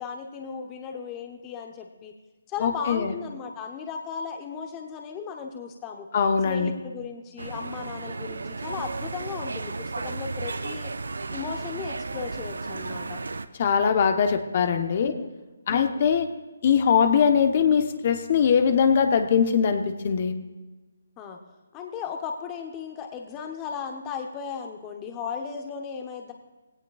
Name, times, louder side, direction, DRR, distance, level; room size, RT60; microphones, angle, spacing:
voice 1, 0.0-2.1 2.5-6.1 6.4-10.9 11.3-13.2 15.1-15.3 15.7-16.1 21.2-21.4 21.7-26.3, left 6 dB, 20° left, 3 dB, 0.9 m, -36 dB
voice 2, 2.6-3.1 6.1-6.7 13.6-15.1 15.7-16.3 16.6-20.3, left 7 dB, 45° left, 7 dB, 1.0 m, -21 dB
sound 1, 7.4-13.5, right 3 dB, 75° right, 0.7 m, -34 dB
17.5 x 17.0 x 2.4 m, 1.2 s
figure-of-eight pair, 150°, 0 cm